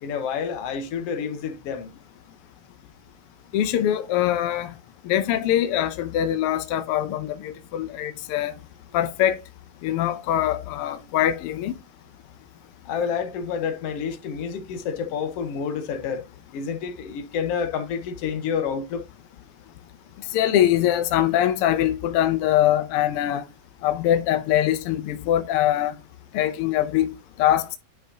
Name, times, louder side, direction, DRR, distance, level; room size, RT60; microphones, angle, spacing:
voice 1, 0.0-1.9 12.9-16.3 16.5-19.0, left 6 dB, 65° left, 1.8 m, -29 dB
voice 2, 3.5-4.7 5.0-8.5 8.9-9.4 9.8-11.7 20.3-23.4 23.8-25.9 26.3-27.1 27.4-27.8, left 12 dB, 80° left, 1.3 m, -23 dB
10.0 x 5.2 x 2.8 m
omnidirectional pair, 3.3 m